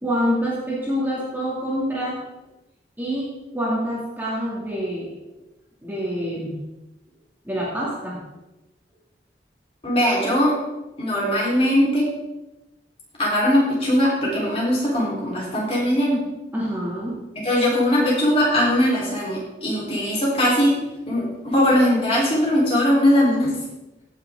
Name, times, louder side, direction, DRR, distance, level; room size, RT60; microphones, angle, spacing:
voice 1, 0.0-2.2 3.0-5.1 5.8-6.6 7.4-8.2 16.5-17.2, equal, 10° right, -6 dB, 2.3 m, -26 dB
voice 2, 9.8-10.5 11.0-12.1 13.2-16.2 17.4-20.7 21.1-23.5, equal, 30° left, -5 dB, 3.7 m, -20 dB
16.0 x 6.6 x 3.7 m, 1.0 s
head